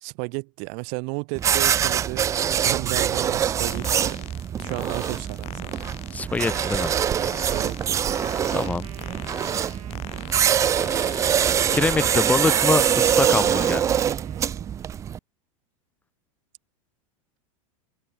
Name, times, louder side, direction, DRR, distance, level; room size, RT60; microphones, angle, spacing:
voice 1, 0.0-2.3 2.5-4.2 4.6-5.8 7.3-8.0, right 40 dB or more, 45° right, 1.5 m, -33 dB
sound 1, 1.3-15.2, right 9 dB, 15° right, 0.7 m, -24 dB
sound 2, 3.7-13.8, left 17 dB, 35° left, 5.7 m, -41 dB
voice 2, 6.1-6.9 8.5-8.9 11.3-11.4 11.7-14.1, left 4 dB, 10° left, 1.1 m, -25 dB
Wind instrument woodwind instrument, 8.1-14.8, right 13 dB, 85° right, 4.4 m, -47 dB
supercardioid pair, 155°, 17 cm